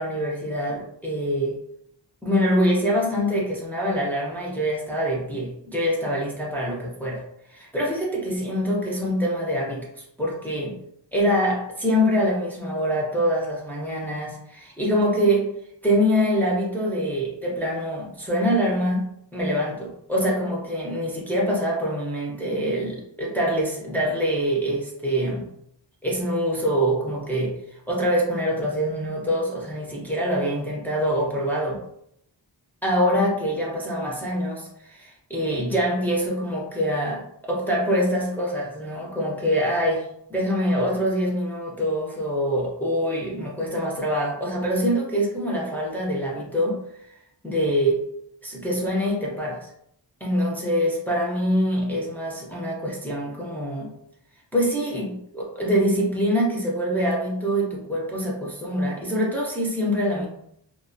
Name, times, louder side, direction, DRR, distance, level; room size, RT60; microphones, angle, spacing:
voice 1, 0.0-1.6 2.2-7.2 7.5-10.8 11.1-15.5 15.8-19.1 19.3-25.5 26.0-27.6 27.9-31.8 32.8-46.8 47.4-48.0 48.4-49.7 50.2-54.0 54.5-60.3, equal, 5° left, -4 dB, 0.5 m, -25 dB
2.4 x 2.2 x 2.5 m, 0.74 s
wide cardioid pair, 65°, 46 cm